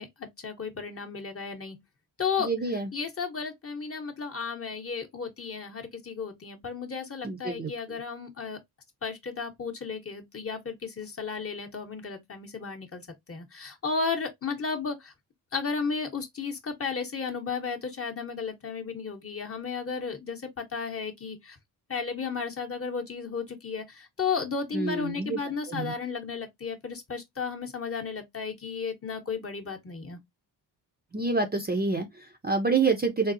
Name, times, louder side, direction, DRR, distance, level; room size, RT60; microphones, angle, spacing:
voice 1, 0.0-1.8 2.2-8.6 9.0-15.1 15.5-21.6 21.9-30.2, left 5 dB, 30° left, 0.8 m, -34 dB
voice 2, 2.4-2.9 7.2-7.7 24.7-25.4 25.7-25.9 31.1-33.3, right 4 dB, 20° right, 0.5 m, -27 dB
3.9 x 2.0 x 2.5 m
cardioid pair, 75°, 44 cm